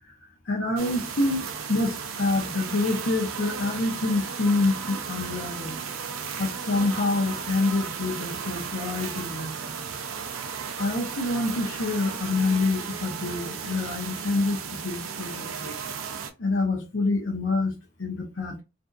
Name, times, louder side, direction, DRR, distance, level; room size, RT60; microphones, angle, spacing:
voice 1, 0.4-5.8 6.4-9.5 10.8-15.7 16.4-17.7 18.0-18.6, left 2 dB, 65° left, 0.7 m, -27 dB
sound 1, 0.8-16.3, right 6 dB, 90° right, 0.5 m, -35 dB
2.5 x 2.3 x 2.5 m
head